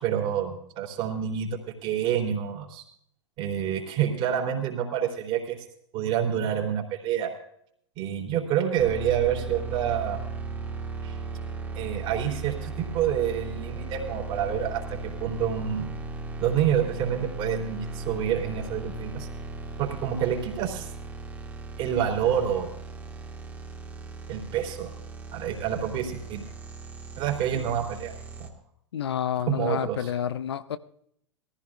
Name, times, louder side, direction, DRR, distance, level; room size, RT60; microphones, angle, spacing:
voice 1, 0.0-2.8 3.4-5.6 5.9-7.3 7.9-10.2 11.0-11.2 11.7-14.8 15.2-15.9 16.4-19.3 19.8-20.9 21.8-22.7 24.3-24.9 25.3-26.5 27.2-28.1 28.4-28.5 29.5-30.1, right 9 dB, 35° right, 3.4 m, -28 dB
sound 1, 8.8-28.5, right 3 dB, 10° right, 2.4 m, -37 dB
voice 2, 28.9-30.8, left 9 dB, 65° left, 0.7 m, -29 dB
22.0 x 15.0 x 2.5 m
figure-of-eight pair, 95°, 15 cm